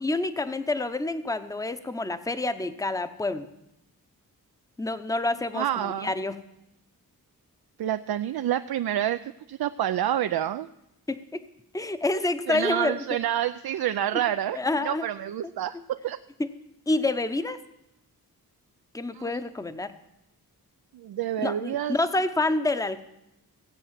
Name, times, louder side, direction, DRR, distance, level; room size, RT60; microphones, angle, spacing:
voice 1, 0.0-3.5 4.8-6.4 11.1-11.4 11.7-13.0 14.5-15.1 16.9-17.6 18.9-19.9 21.4-23.0, left 2 dB, 10° left, 11 dB, 0.7 m, -28 dB
voice 2, 5.5-6.1 7.8-10.7 12.5-14.6 14.8-16.2 19.1-19.4 20.9-22.0, right 11 dB, 85° right, 10 dB, 0.5 m, -28 dB
16.0 x 8.0 x 7.4 m, 0.87 s
wide cardioid pair, 110°, 36 cm